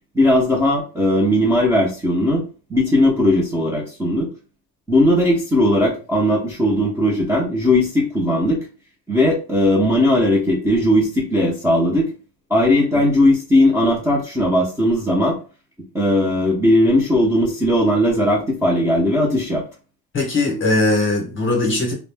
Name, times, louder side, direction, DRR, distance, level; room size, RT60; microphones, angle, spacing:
voice 1, 0.1-2.4 2.7-4.3 4.9-8.6 9.1-12.1 12.5-15.4 15.9-19.6, left 1 dB, 5° right, -5 dB, 0.6 m, -18 dB
voice 2, 20.1-21.9, left 2 dB, 30° left, 1 dB, 0.8 m, -19 dB
2.4 x 2.0 x 3.3 m, 0.34 s
cardioid pair, 160°, 40 cm